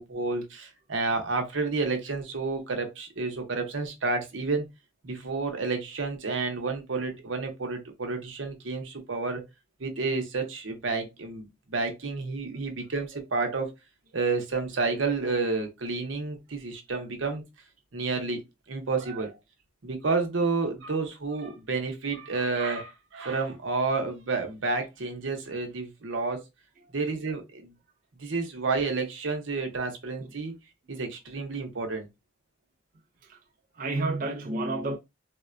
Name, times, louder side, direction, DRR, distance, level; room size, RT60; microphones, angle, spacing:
voice 1, 0.0-4.7 5.0-9.4 9.8-13.7 14.1-17.4 17.9-18.4 18.7-19.3 19.8-26.4 26.9-27.7 28.2-30.5 30.9-32.1, right 3 dB, 80° right, 0.8 m, -30 dB
voice 2, 33.7-35.0, right 2 dB, 45° right, 0.4 m, -31 dB
3.5 x 2.1 x 2.4 m
head